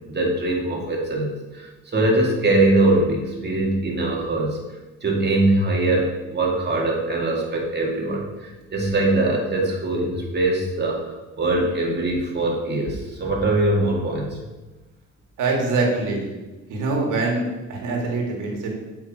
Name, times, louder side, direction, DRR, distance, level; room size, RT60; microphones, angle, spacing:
voice 1, 0.1-4.6 5.0-14.4, right 2 dB, 35° right, -1 dB, 2.5 m, -22 dB
voice 2, 15.4-16.3 16.7-18.7, right 3 dB, 85° right, 0 dB, 2.2 m, -24 dB
8.0 x 5.9 x 4.9 m, 1.1 s
cardioid pair, 90°, 30 cm